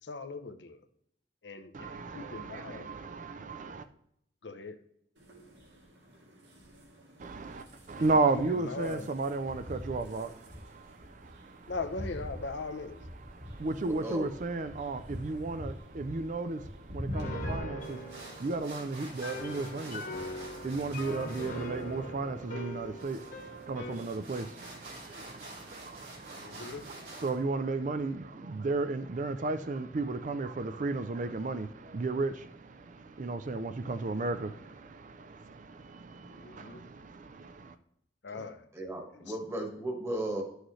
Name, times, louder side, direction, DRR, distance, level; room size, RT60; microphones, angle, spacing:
voice 1, 0.0-0.8 1.4-2.9 4.4-4.8 8.0-8.1 8.3-9.1 11.7-13.0 26.4-26.8 36.3-36.8 38.2-38.7, left 3 dB, 80° left, 0.7 m, -40 dB
voice 2, 1.7-3.9 7.2-11.7 13.2-37.8, right 3 dB, 45° right, 0.5 m, -34 dB
sound 1, 5.2-17.6, equal, 80° right, 2.0 m, -44 dB
voice 3, 13.8-14.3 38.3-40.4, right 1 dB, 15° right, 1.4 m, -36 dB
Piano, 17.1-24.1, left 1 dB, 50° left, 1.3 m, -41 dB
sound 2, 17.8-27.4, right 2 dB, 60° right, 3.3 m, -49 dB
11.0 x 6.4 x 3.1 m
head